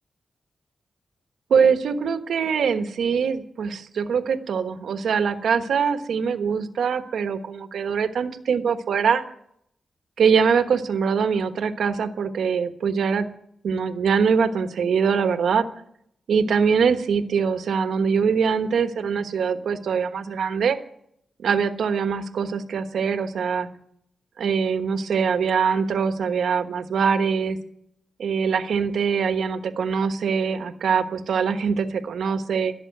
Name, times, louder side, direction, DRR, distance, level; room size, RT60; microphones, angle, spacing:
voice 1, 1.5-9.2 10.2-13.3 13.6-15.7 16.3-20.8 21.4-23.7 24.4-27.6 28.2-32.7, right 6 dB, 90° right, 9 dB, 1.2 m, -23 dB
16.0 x 7.0 x 9.4 m, 0.71 s
wide cardioid pair, 110°, 0 cm